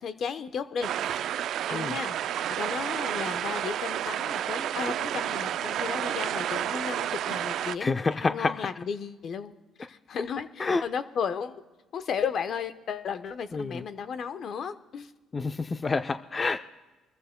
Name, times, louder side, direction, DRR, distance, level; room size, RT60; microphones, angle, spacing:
voice 1, 0.0-1.3 1.7-2.2 2.5-9.5 9.9-11.6 11.9-15.1, left 6 dB, 60° left, 10 dB, 0.9 m, -34 dB
sound 1, 0.8-7.8, right 10 dB, 70° right, 0.3 m, -30 dB
voice 2, 7.8-8.7 10.6-10.8 13.5-13.8 15.3-16.6, left 4 dB, 30° left, 8 dB, 0.5 m, -28 dB
25.0 x 14.5 x 2.2 m, 1.2 s
supercardioid pair, 80°, 0 cm